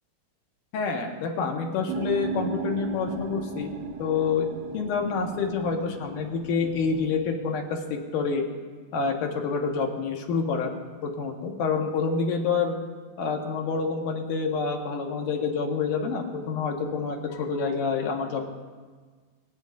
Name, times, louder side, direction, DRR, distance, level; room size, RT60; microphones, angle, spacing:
voice 1, 0.7-3.7 4.0-4.5 4.7-8.4 8.9-10.7 11.0-12.7 13.2-18.5, left 5 dB, 85° left, 2 dB, 2.8 m, -27 dB
sound 1, 1.9-7.2, right 5 dB, 90° right, 2.4 m, -36 dB
24.5 x 9.1 x 2.5 m, 1.5 s
omnidirectional pair, 3.6 m